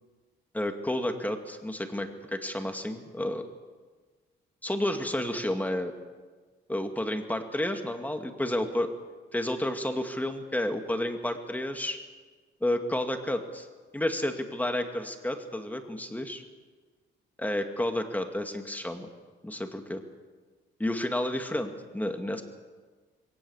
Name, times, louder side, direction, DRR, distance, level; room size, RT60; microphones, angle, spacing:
voice 1, 0.5-3.5 4.6-5.9 6.7-8.9 9.3-12.0 12.6-13.7 13.9-16.4 17.4-19.1 19.4-20.0 20.8-22.4, left 1 dB, 10° left, 5 dB, 2.3 m, -31 dB
22.5 x 18.0 x 7.4 m, 1.4 s
cardioid pair, 90°, 20 cm